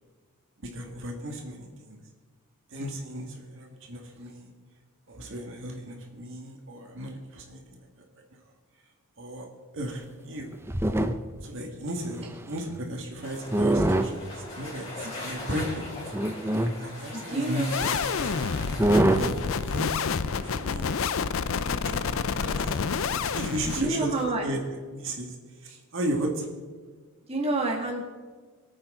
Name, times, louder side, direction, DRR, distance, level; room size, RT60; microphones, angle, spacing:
voice 1, 0.7-2.0 2.7-4.5 5.1-7.6 9.2-9.5 9.7-10.5 11.4-15.8 16.8-19.3 19.7-20.9 21.5-22.8 23.3-24.1 24.4-24.6 24.9-25.4 25.6-26.5, right 1 dB, 60° right, 1 dB, 1.9 m, -35 dB
sound 1, 10.4-11.4 12.0-12.8 13.5-14.1 15.1-15.2 16.1-16.8 17.9-18.0 18.2-18.3 18.8-19.3 20.5-20.7, right 1 dB, 10° right, 0.5 m, -24 dB
sound 2, 13.2-23.5, left 2 dB, 30° left, 4.3 m, -41 dB
voice 2, 17.1-17.7 23.8-24.4 27.3-28.0, right 2 dB, 30° right, -1 dB, 2.0 m, -28 dB
sound 3, 17.7-24.4, left 5 dB, 65° left, 0.5 m, -29 dB
23.5 x 8.8 x 3.8 m, 1.5 s
head